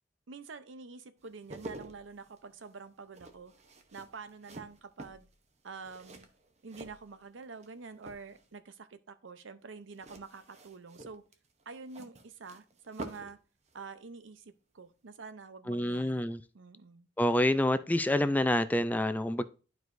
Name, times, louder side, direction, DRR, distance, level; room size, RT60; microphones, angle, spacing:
voice 1, 0.3-3.5 3.9-5.3 5.6-6.3 6.6-11.2 11.7-13.4 13.7-16.3 16.5-17.1, right 4 dB, 90° right, 0.7 m, -47 dB
sound 1, 1.2-7.7 8.0-8.6 9.9-13.4 13.7-13.8, right 1 dB, 35° right, 0.8 m, -49 dB
voice 2, 15.7-16.4 17.2-19.4, left 1 dB, 10° left, 0.3 m, -27 dB
11.5 x 4.6 x 2.6 m
head